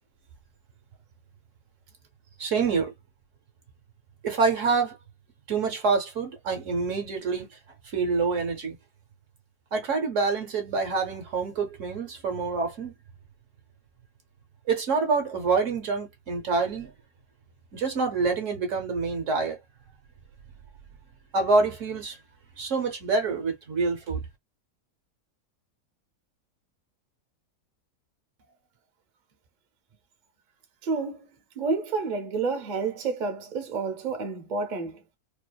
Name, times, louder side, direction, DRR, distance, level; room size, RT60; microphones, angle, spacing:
voice 1, 2.4-2.9 4.2-5.0 5.5-7.6 7.8-8.8 9.7-12.9 14.7-16.9 17.7-19.6 21.3-22.2 22.6-24.3, right 4 dB, 60° right, 1.0 m, -26 dB
voice 2, 30.8-31.3 31.6-35.0, right 4 dB, 45° right, 0.6 m, -29 dB
2.7 x 2.3 x 2.2 m
omnidirectional pair, 1.6 m